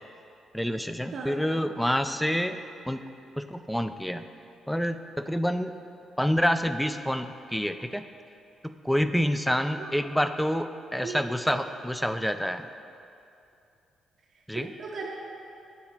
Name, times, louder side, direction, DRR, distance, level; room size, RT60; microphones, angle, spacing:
voice 1, 0.5-2.6 2.9-3.0 3.4-4.2 4.7-5.7 6.2-8.0 8.6-12.7 14.5-14.7, equal, 5° left, 10 dB, 0.4 m, -27 dB
voice 2, 11.0-11.6 14.5-15.1, right 4 dB, 65° right, -6 dB, 0.8 m, -37 dB
7.3 x 3.8 x 6.0 m, 2.6 s
hypercardioid pair, 50°, 0 cm